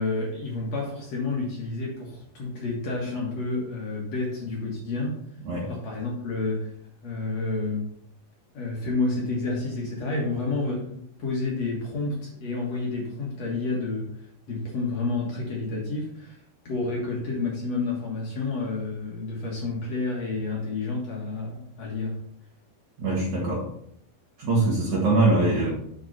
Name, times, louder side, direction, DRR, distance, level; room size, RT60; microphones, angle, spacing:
voice 1, 0.0-5.2 5.7-6.7 7.0-7.8 8.5-14.1 14.5-22.2, left 3 dB, 55° left, -3 dB, 2.2 m, -30 dB
voice 2, 23.0-23.6 24.4-25.7, right 2 dB, 55° right, -5 dB, 2.8 m, -22 dB
7.6 x 5.9 x 4.1 m, 0.69 s
omnidirectional pair, 4.6 m